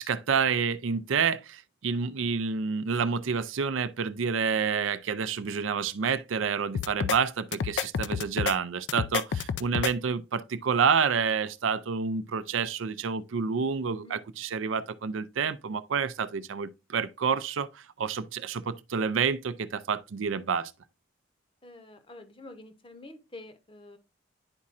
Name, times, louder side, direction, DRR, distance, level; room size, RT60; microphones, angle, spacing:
voice 1, 0.0-20.7, right 6 dB, 85° right, 0.5 m, -29 dB
sound 1, 6.7-7.2 7.5-8.5 8.9-9.9, left 7 dB, 65° left, 0.4 m, -29 dB
voice 2, 13.9-14.2 21.6-24.0, left 2 dB, 25° left, 0.8 m, -48 dB
10.5 x 4.2 x 2.5 m
head